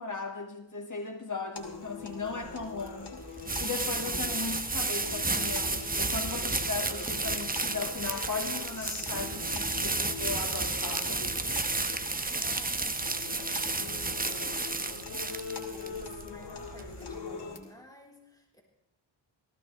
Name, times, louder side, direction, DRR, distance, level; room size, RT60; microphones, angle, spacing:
voice 1, 0.0-11.5, left 4 dB, 40° left, 3 dB, 2.2 m, -37 dB
sound 1, 1.6-17.6, left 4 dB, 60° left, 2.7 m, -43 dB
sound 2, 2.3-17.2, right 3 dB, 20° right, 1.0 m, -32 dB
voice 2, 12.3-18.6, equal, 10° left, -2 dB, 4.3 m, -54 dB
18.0 x 15.5 x 3.4 m, 0.85 s
cardioid pair, 60°, 46 cm